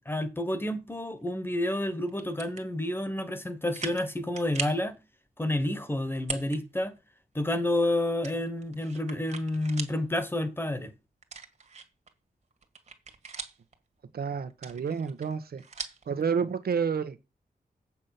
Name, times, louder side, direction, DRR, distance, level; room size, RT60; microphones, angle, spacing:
voice 1, 0.0-5.0 5.4-6.9 7.3-10.9, left 1 dB, 15° left, 1.4 m, -29 dB
sound 1, 2.1-2.6 3.2-3.3 3.7-4.1 4.4-4.8 6.2-6.6 7.0-7.1 8.2-10.0 10.4-10.5 11.2-12.1 12.5-13.7 14.5-16.1, right 5 dB, 45° right, 1.8 m, -39 dB
voice 2, 14.1-15.6 16.1-17.2, right 6 dB, 80° right, 1.3 m, -30 dB
8.2 x 7.2 x 6.0 m
wide cardioid pair, 155°, 16 cm